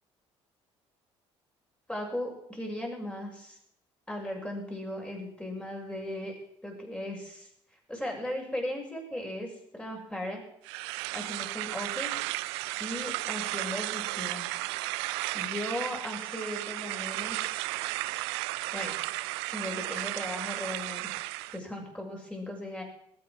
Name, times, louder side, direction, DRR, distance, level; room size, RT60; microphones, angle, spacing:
voice 1, 1.9-3.6 4.1-6.4 6.6-7.5 7.9-10.4 11.1-12.2 12.8-14.5 15.3-17.6 18.7-19.0 19.5-21.2 21.5-22.8, left 1 dB, 5° left, 0 dB, 6.9 m, -37 dB
sound 1, 10.6-21.6, right 20 dB, 75° right, 0.5 m, -34 dB
20.5 x 8.9 x 6.3 m, 0.71 s
hypercardioid pair, 55°, 14 cm